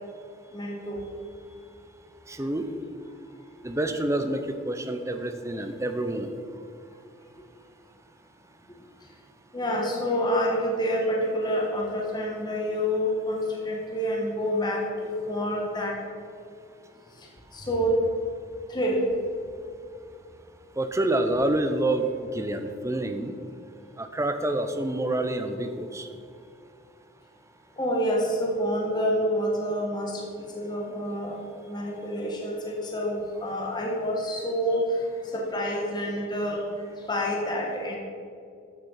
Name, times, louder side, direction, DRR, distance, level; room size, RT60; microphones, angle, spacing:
voice 1, 0.5-1.0 9.5-16.0 17.2-18.0 18.7-19.0 27.8-31.4 31.6-36.6 36.9-38.0, equal, 20° left, -2 dB, 1.5 m, -28 dB
voice 2, 2.3-2.7 3.6-6.3 20.8-22.1 22.3-23.3 24.0-26.1, right 1 dB, 15° right, 7 dB, 0.7 m, -27 dB
14.0 x 6.3 x 5.7 m, 2.5 s
head